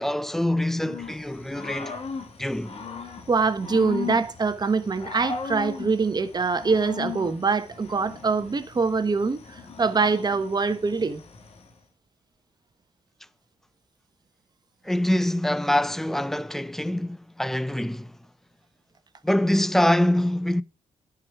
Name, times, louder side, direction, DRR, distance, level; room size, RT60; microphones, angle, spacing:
voice 1, 0.0-2.0 2.4-2.7 14.8-18.2 19.2-20.6, left 1 dB, 5° left, 0.5 m, -24 dB
Growling / Cricket, 0.8-11.7, left 5 dB, 50° left, 1.8 m, -38 dB
voice 2, 3.3-11.2, right 4 dB, 30° right, 1.1 m, -24 dB
10.5 x 5.0 x 6.0 m
cardioid pair, 90°, 13 cm